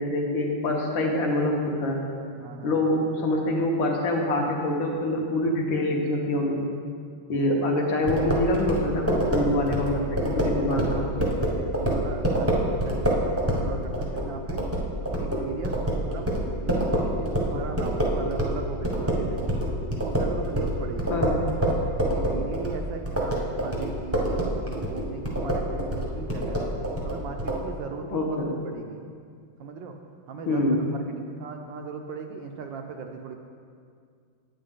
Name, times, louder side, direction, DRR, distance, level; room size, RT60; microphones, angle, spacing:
voice 1, 0.0-2.0 2.6-6.7 7.3-11.1 21.1-21.4 28.1-28.5 30.5-30.9, left 1 dB, 70° left, 0 dB, 1.8 m, -25 dB
voice 2, 2.4-2.9 7.4-7.9 9.3-14.6 15.1-15.8 16.0-16.4 16.6-19.5 20.0-21.8 22.1-26.6 27.0-28.4 28.6-29.1 29.6-30.0 30.3-33.4, right 5 dB, 75° right, 4 dB, 1.2 m, -38 dB
sound 1, 8.1-18.6 18.8-27.6, right 1 dB, 10° right, 0.7 m, -26 dB
8.8 x 8.8 x 3.7 m, 2.2 s
omnidirectional pair, 2.3 m